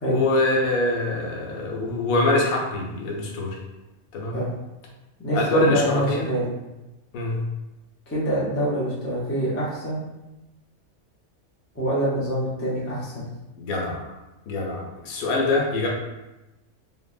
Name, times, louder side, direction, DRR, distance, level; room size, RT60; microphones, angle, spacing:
voice 1, 0.1-3.6 4.1-4.3 5.3-6.2 7.1-7.5 13.6-14.0 14.5-15.9, left 2 dB, 90° left, -1 dB, 1.1 m, -24 dB
voice 2, 5.2-6.5 8.1-10.0 11.7-13.3, right 1 dB, 20° left, -7 dB, 0.4 m, -25 dB
3.2 x 2.0 x 2.3 m, 1.0 s
omnidirectional pair, 1.4 m